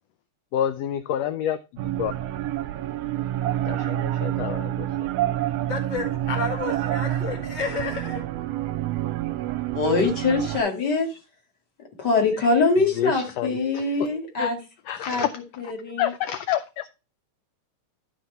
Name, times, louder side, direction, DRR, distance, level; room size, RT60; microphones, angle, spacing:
voice 1, 0.5-1.6 2.0-2.1 3.7-4.9 13.0-13.5 14.4-14.5 14.9-15.3 16.0-16.8, left 10 dB, 75° left, 1.6 m, -27 dB
sound 1, 1.8-10.6, right 13 dB, 75° right, 1.6 m, -28 dB
voice 2, 5.7-8.2, left 5 dB, 20° left, 1.6 m, -31 dB
voice 3, 9.7-11.1 12.0-14.6 14.9-16.1, left 3 dB, 40° left, 2.4 m, -23 dB
12.0 x 4.3 x 4.4 m
omnidirectional pair, 3.3 m